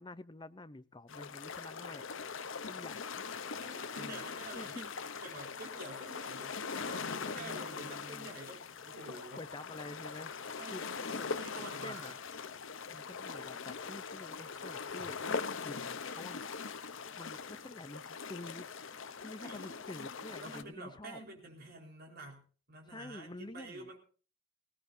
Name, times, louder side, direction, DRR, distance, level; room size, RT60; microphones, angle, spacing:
voice 1, 0.0-2.0 2.6-3.1 4.0-4.2 4.5-4.9 7.4-8.3 9.1-10.3 10.7-12.1 12.9-18.7 19.2-21.2 22.9-23.9, left 2 dB, 20° left, 13 dB, 0.6 m, -49 dB
sound 1, 1.1-20.6, left 5 dB, 60° left, 0.8 m, -41 dB
voice 2, 3.6-9.4 10.6-12.2 19.4-19.7 20.4-22.4 22.7-24.0, right 2 dB, 45° right, 1 dB, 4.4 m, -48 dB
19.0 x 17.5 x 2.7 m, 0.38 s
head